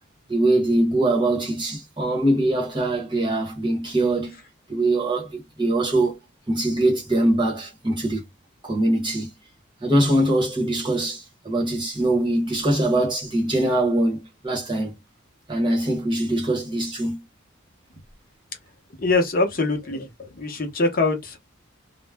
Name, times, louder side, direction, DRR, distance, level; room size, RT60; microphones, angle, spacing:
voice 1, 0.3-4.4 4.7-6.2 6.5-8.2 8.6-9.3 9.8-14.9 15.5-17.2, right 1 dB, 25° right, 0.9 m, -22 dB
voice 2, 19.0-20.1 20.4-21.4, left 3 dB, 45° left, 0.7 m, -23 dB
2.3 x 2.1 x 3.3 m
head